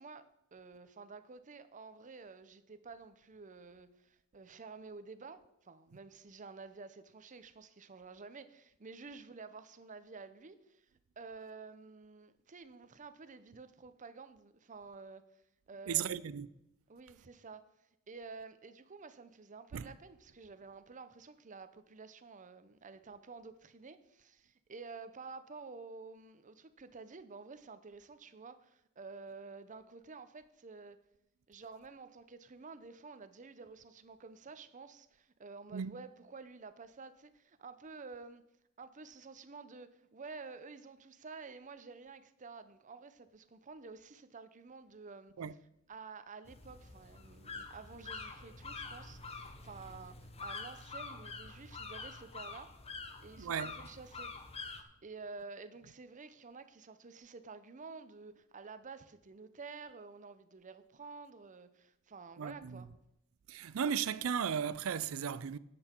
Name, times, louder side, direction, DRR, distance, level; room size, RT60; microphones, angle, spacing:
voice 1, 0.0-10.8 11.2-15.4 15.7-16.2 16.9-17.7 18.1-31.0 31.5-38.4 38.8-45.3 45.9-52.7 53.2-54.3 54.7-62.9, right 4 dB, 35° right, 0.7 m, -51 dB
voice 2, 15.9-16.5 19.7-19.9 35.7-35.9 45.4-45.5 53.4-53.8 62.4-62.8 63.5-65.6, right 8 dB, 75° right, 0.4 m, -35 dB
sound 1, 46.5-54.8, left 4 dB, 30° left, 0.9 m, -46 dB
10.5 x 7.8 x 4.5 m
head